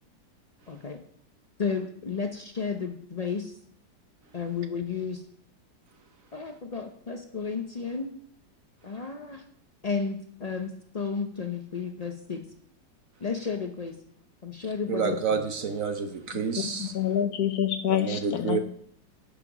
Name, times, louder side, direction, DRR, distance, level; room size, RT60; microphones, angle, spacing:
voice 1, 0.7-1.0 1.6-3.6 4.3-5.2 6.3-8.1 8.8-9.4 9.8-12.4 13.2-14.0 14.4-15.4, left 5 dB, 85° left, 0.3 m, -32 dB
voice 2, 14.9-16.9 18.0-18.6, right 6 dB, 55° right, 1.0 m, -29 dB
voice 3, 16.3-18.6, left 10 dB, 60° left, 1.2 m, -27 dB
12.0 x 6.9 x 4.9 m
omnidirectional pair, 2.0 m